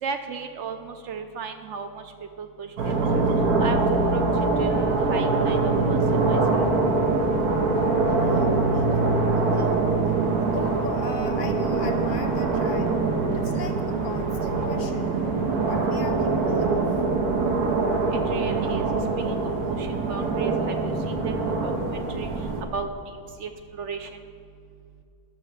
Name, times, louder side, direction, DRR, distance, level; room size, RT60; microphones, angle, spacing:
voice 1, 0.0-2.1 2.4-3.2 3.6-6.7 18.1-18.9 19.2-22.3 22.7-24.2, right 5 dB, 65° right, 7 dB, 0.7 m, -35 dB
sound 1, 2.8-22.6, right 3 dB, 90° right, 1.5 m, -23 dB
voice 2, 8.1-9.8 10.4-12.9 13.4-16.9, left 5 dB, 80° left, 6 dB, 0.4 m, -38 dB
11.0 x 5.7 x 6.5 m, 2.4 s
omnidirectional pair, 1.6 m